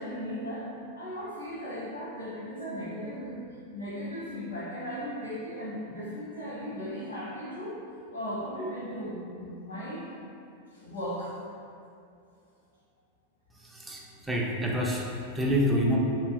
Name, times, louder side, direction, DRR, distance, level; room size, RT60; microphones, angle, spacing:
voice 1, 0.0-3.4 3.7-7.8 8.1-10.0 10.7-11.3 11.7-11.8, equal, 85° left, -9 dB, 1.0 m, -37 dB
voice 2, 13.5-16.0, equal, 10° right, -3 dB, 0.3 m, -28 dB
2.6 x 2.5 x 2.3 m, 2.5 s
figure-of-eight pair, 90°, 0 cm